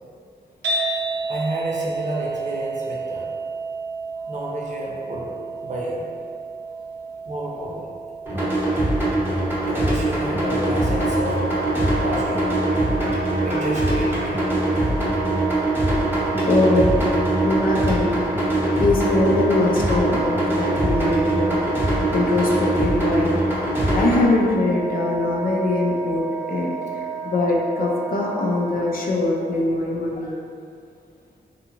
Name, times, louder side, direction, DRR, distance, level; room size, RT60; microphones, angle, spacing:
sound 1, 0.6-16.9, right 3 dB, 85° right, 0.6 m, -33 dB
voice 1, 1.3-3.3 4.3-5.3 5.6-6.1 7.3-7.9 8.3-8.5 9.6-11.4 12.0-12.8 13.4-14.6 19.2-19.3, right 1 dB, 45° right, -4 dB, 0.6 m, -31 dB
sound 2, 8.3-24.3, right 1 dB, 10° right, 0.8 m, -22 dB
Wind instrument woodwind instrument, 10.0-29.5, right 4 dB, 85° left, 1.4 m, -32 dB
voice 2, 16.5-17.0 17.4-18.2 18.8-21.6 22.1-23.3 23.9-26.7 27.2-30.3, left 2 dB, 55° left, -1 dB, 0.5 m, -22 dB
2.7 x 2.4 x 2.8 m, 2.3 s
cardioid pair, 75°, 17 cm